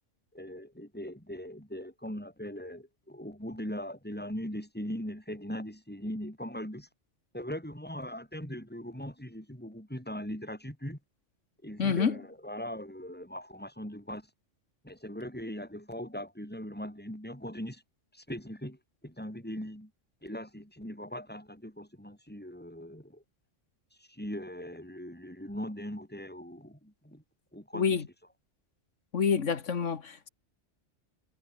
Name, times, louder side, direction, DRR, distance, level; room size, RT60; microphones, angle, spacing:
voice 1, 0.3-6.9 7.3-11.0 11.6-14.3 14.8-17.8 18.1-19.9 20.2-23.2 24.0-27.2 27.5-28.0, equal, 10° left, 7.2 m, -40 dB
voice 2, 11.8-12.2 27.7-28.0 29.1-30.3, left 6 dB, 85° left, 1.9 m, -27 dB
omnidirectional pair, 1.2 m